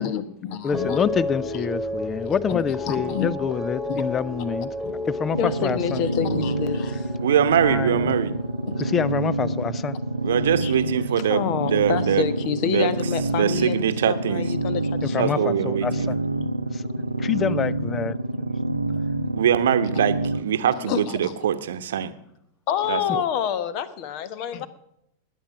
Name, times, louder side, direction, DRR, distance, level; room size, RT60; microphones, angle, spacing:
voice 1, 0.0-1.0 2.5-3.3 3.9-4.0 5.4-7.0 8.7-8.8 10.6-10.7 11.3-15.6 20.7-21.4 22.7-24.7, left 9 dB, 45° left, 1.2 m, -28 dB
voice 2, 0.6-4.7 5.0-6.0 7.6-8.1 8.8-10.0 15.1-16.2 16.7-16.9 17.2-18.5, left 7 dB, 20° left, 0.6 m, -27 dB
sound 1, 0.7-11.1 11.4-12.0, left 1 dB, 5° left, 2.4 m, -33 dB
sound 2, 5.3-20.4, right 2 dB, 85° right, 0.8 m, -27 dB
voice 3, 7.2-8.3 10.2-12.2 12.6-12.9 13.4-14.4 15.1-16.1 19.3-22.1 22.9-23.2, right 9 dB, 60° right, 1.0 m, -23 dB
20.0 x 8.5 x 5.8 m
figure-of-eight pair, 90°, 0 cm